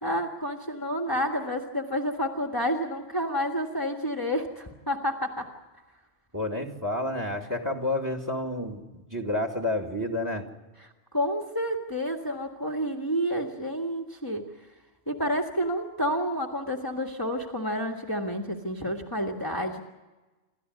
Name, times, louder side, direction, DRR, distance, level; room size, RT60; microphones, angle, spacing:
voice 1, 0.0-5.5 11.1-14.4 15.1-19.8, equal, 20° left, 1 dB, 1.7 m, -29 dB
voice 2, 6.3-10.5, left 1 dB, 15° right, 3 dB, 2.3 m, -30 dB
28.0 x 13.5 x 9.6 m, 1.2 s
omnidirectional pair, 1.2 m